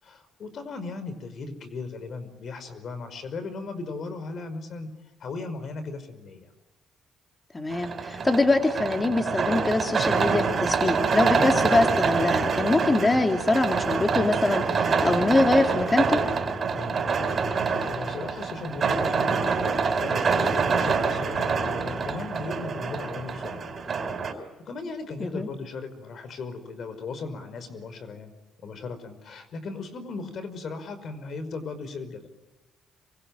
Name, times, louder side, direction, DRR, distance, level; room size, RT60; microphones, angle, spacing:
voice 1, 0.0-4.9 5.2-6.5 16.7-17.2 17.6-23.6 24.2-32.3, left 3 dB, 60° left, 11 dB, 5.3 m, -37 dB
voice 2, 7.5-16.2 25.2-25.5, left 2 dB, 25° left, 4 dB, 2.8 m, -24 dB
sound 1, 7.7-24.3, right 5 dB, 50° right, 5.0 m, -26 dB
27.0 x 24.0 x 9.0 m, 1.1 s
supercardioid pair, 70°, 0 cm